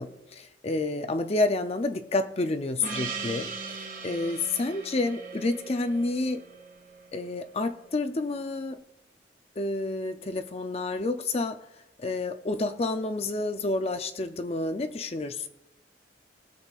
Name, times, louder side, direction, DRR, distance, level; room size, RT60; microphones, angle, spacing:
voice 1, 0.0-6.4 7.1-8.8 9.6-11.6 12.0-15.5, left 2 dB, 35° left, 8 dB, 0.5 m, -29 dB
Gong, 2.8-7.6, right 4 dB, 45° right, 1.8 m, -39 dB
21.0 x 7.1 x 2.4 m, 0.91 s
head